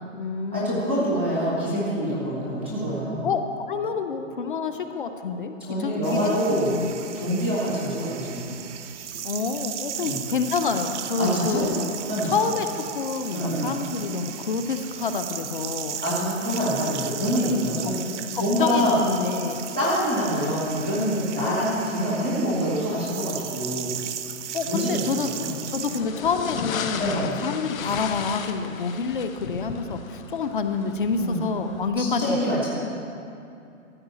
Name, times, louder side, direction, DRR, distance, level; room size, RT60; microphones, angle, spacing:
voice 1, 0.0-1.2 3.2-3.4 3.7-6.9 9.2-11.9 12.2-16.0 16.8-16.9 17.4-17.9 18.3-19.7 24.5-25.3 25.7-32.7, left 5 dB, 40° left, 7 dB, 0.5 m, -28 dB
voice 2, 0.5-3.3 5.6-6.7 7.1-8.6 10.0-10.2 11.2-11.6 12.1-12.3 13.3-13.7 16.0-18.0 18.4-19.0 19.8-24.0 24.7-25.1 25.4-25.6 27.0-27.4 31.2-31.4 32.0-32.7, equal, 10° right, -9 dB, 0.4 m, -25 dB
sound 1, 6.0-26.0, right 9 dB, 60° right, 0.7 m, -36 dB
sound 2, 25.9-31.9, left 7 dB, 85° left, 0.9 m, -35 dB
13.5 x 4.8 x 8.1 m, 2.6 s
hypercardioid pair, 170°, 40 cm